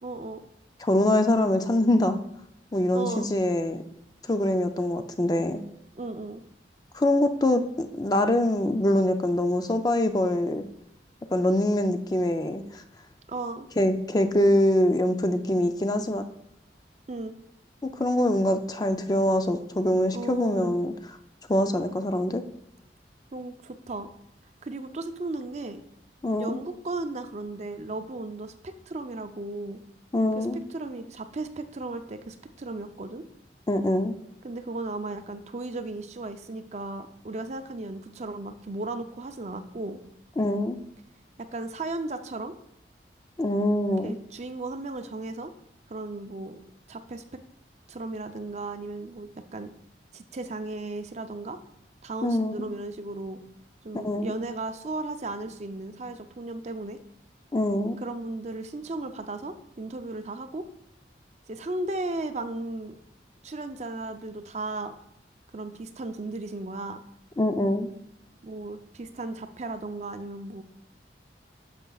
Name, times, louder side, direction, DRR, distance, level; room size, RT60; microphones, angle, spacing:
voice 1, 0.0-0.5 2.9-3.3 5.9-6.4 13.3-13.7 17.1-17.4 20.1-20.8 23.3-24.1 24.6-25.8 26.4-29.8 30.4-33.2 34.4-40.0 41.4-42.6 44.0-45.5 45.9-46.6 46.9-47.4 47.9-49.7 50.1-51.6 52.0-53.4 53.8-57.0 58.0-60.7 61.5-63.0 63.4-64.9 65.5-67.0 68.4-70.6, right 2 dB, 40° right, 8 dB, 0.5 m, -35 dB
voice 2, 0.8-2.2 2.7-3.8 4.3-5.6 6.9-10.6 11.3-12.8 13.8-16.2 18.0-20.9 21.5-22.4 26.2-26.6 30.1-30.6 33.7-34.1 40.4-40.8 43.4-44.2 52.2-52.7 54.0-54.3 57.5-58.0 67.4-67.9, left 1 dB, 20° left, 7 dB, 0.4 m, -24 dB
10.5 x 6.7 x 2.3 m, 0.80 s
head